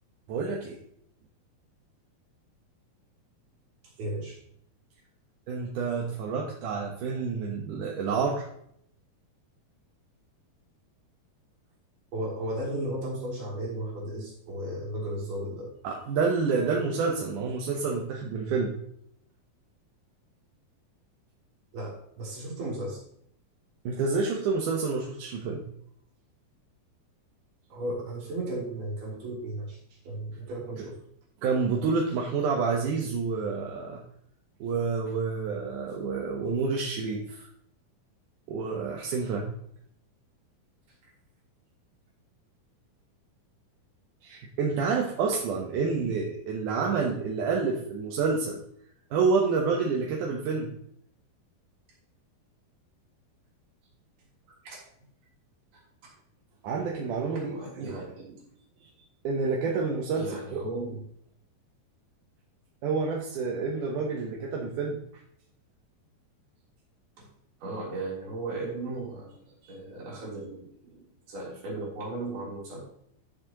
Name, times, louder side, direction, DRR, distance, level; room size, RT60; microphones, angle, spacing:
voice 1, 0.3-0.8 5.5-8.5 15.8-18.8 23.8-25.6 30.8-30.9 31.4-34.0 34.6-37.5 38.5-39.5 44.2-48.6 49.1-50.7 56.6-58.1 59.2-60.6 62.8-65.0, right 4 dB, 65° right, -1 dB, 2.4 m, -28 dB
voice 2, 3.8-4.4 12.1-15.7 21.7-23.0 27.7-31.0 54.6-54.9 55.7-56.1 57.2-58.4 58.8-59.1 60.2-61.0 67.6-72.8, right 1 dB, 85° right, -5 dB, 5.5 m, -36 dB
13.0 x 7.4 x 3.0 m, 0.70 s
omnidirectional pair, 4.3 m